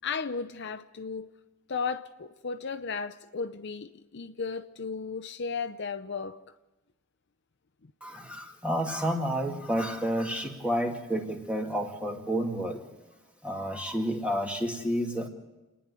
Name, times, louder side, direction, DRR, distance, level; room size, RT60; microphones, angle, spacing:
voice 1, 0.0-1.3 1.7-6.4 7.8-7.9, left 5 dB, 55° left, 0.7 m, -35 dB
voice 2, 8.0-12.8 13.4-15.3, equal, 5° right, 2.3 m, -30 dB
29.0 x 10.5 x 9.5 m
head